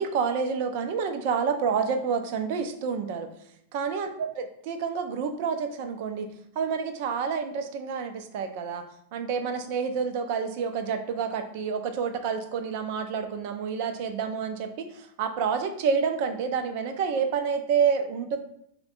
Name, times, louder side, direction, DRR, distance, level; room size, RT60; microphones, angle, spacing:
voice 1, 0.0-3.3 3.7-6.3 6.6-8.8 9.1-18.4, right 6 dB, 50° right, 8 dB, 0.4 m, -28 dB
4.1 x 2.2 x 3.9 m, 0.72 s
figure-of-eight pair, 90°, 0 cm